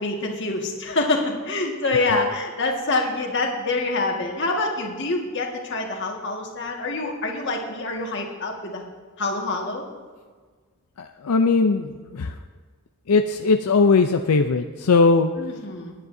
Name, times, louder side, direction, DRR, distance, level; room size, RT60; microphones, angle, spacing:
voice 1, 0.0-8.8 9.2-9.8 15.4-15.9, left 2 dB, 50° left, 1 dB, 1.8 m, -26 dB
voice 2, 11.0-12.3 13.1-15.3, left 4 dB, 85° left, 6 dB, 0.5 m, -19 dB
19.5 x 9.7 x 2.7 m, 1.5 s
head